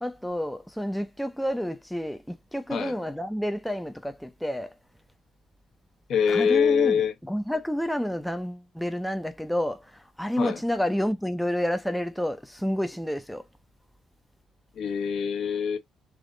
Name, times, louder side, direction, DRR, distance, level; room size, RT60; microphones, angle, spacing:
voice 1, 0.0-4.7 6.3-7.0 7.3-13.4, equal, ahead, 0.6 m, -29 dB
voice 2, 6.1-7.1 10.4-10.6 14.7-15.8, left 7 dB, 70° left, 1.1 m, -24 dB
3.5 x 2.4 x 3.8 m
cardioid pair, 90°, 0 cm